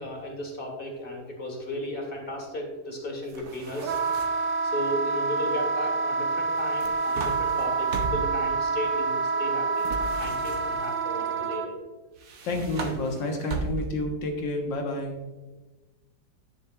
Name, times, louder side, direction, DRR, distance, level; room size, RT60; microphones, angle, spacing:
voice 1, 0.0-3.9 4.6-9.9 10.2-11.8, left 1 dB, 30° left, 1 dB, 1.7 m, -35 dB
sound 1, 3.3-4.6 6.5-8.4 9.8-11.0 12.2-14.1, right 3 dB, 60° right, 1.2 m, -36 dB
Wind instrument woodwind instrument, 3.8-11.7, right 4 dB, 80° right, 0.6 m, -27 dB
voice 2, 12.4-15.1, left 1 dB, 75° left, 2 dB, 2.0 m, -30 dB
10.0 x 9.3 x 2.4 m, 1.2 s
omnidirectional pair, 2.1 m